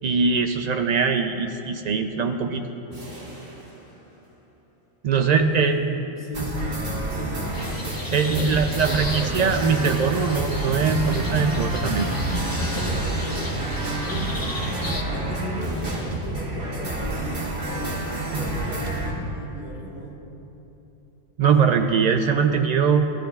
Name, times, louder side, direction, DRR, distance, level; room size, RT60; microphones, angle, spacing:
voice 1, 0.0-2.7 5.0-5.8 8.1-12.1 21.4-23.1, right 6 dB, 90° right, 5 dB, 0.3 m, -21 dB
sound 1, 2.9-4.8 9.5-11.1 15.6-17.2, right 1 dB, 30° right, 2.6 m, -43 dB
voice 2, 5.2-6.7 6.9-7.5 8.2-9.3 12.6-20.2, right 1 dB, 40° left, -4 dB, 1.7 m, -35 dB
sound 2, 6.3-19.1, right 1 dB, 45° right, 1.8 m, -28 dB
sound 3, 7.5-15.0, equal, 20° left, 0.7 m, -34 dB
15.0 x 13.0 x 2.3 m, 3.0 s
omnidirectional pair, 1.3 m